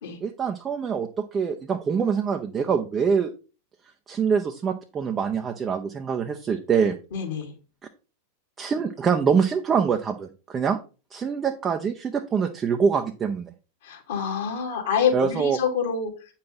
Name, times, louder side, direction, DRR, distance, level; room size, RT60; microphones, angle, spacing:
voice 1, 0.2-3.3 4.1-7.0 8.6-10.8 11.1-13.5 15.1-15.6, right 6 dB, 20° right, 4 dB, 0.8 m, -24 dB
voice 2, 7.1-7.5 13.8-16.1, left 7 dB, 55° left, 1 dB, 2.9 m, -26 dB
8.7 x 5.7 x 3.9 m, 0.33 s
figure-of-eight pair, 90°, 0 cm